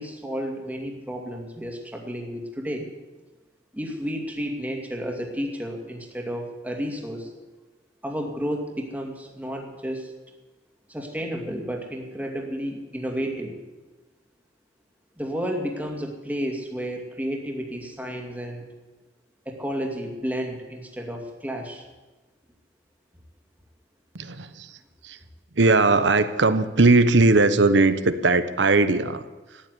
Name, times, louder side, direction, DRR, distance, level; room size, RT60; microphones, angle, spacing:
voice 1, 0.0-2.9 3.7-7.3 8.0-10.1 10.9-13.6 15.2-18.7 19.5-21.8, equal, 10° right, 1 dB, 2.5 m, -31 dB
voice 2, 24.1-25.2 25.5-29.6, right 3 dB, 70° right, 12 dB, 1.0 m, -20 dB
14.5 x 10.5 x 9.7 m, 1.2 s
head